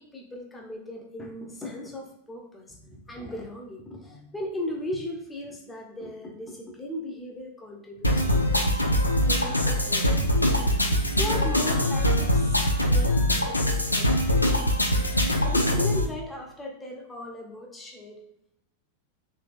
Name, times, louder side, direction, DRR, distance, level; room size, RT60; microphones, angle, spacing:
voice 1, 0.0-8.8 9.2-10.1 11.1-14.1 15.4-18.2, left 1 dB, 10° left, 0 dB, 0.7 m, -37 dB
sound 1, 8.0-16.1, left 1 dB, 85° left, 0.4 m, -23 dB
3.2 x 3.1 x 2.4 m, 0.81 s
figure-of-eight pair, 90°, 0 cm